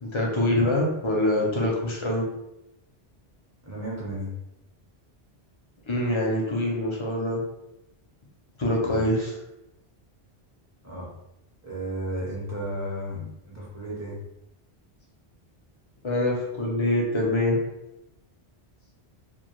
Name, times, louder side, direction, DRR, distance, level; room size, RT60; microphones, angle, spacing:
voice 1, 0.0-2.3 5.9-7.4 8.6-9.3 16.0-17.6, left 1 dB, 40° left, -2 dB, 0.4 m, -24 dB
voice 2, 3.6-4.3 8.8-9.1 10.8-11.1 11.6-14.2, equal, 20° right, -7 dB, 0.5 m, -34 dB
2.2 x 2.2 x 2.9 m, 0.88 s
omnidirectional pair, 1.1 m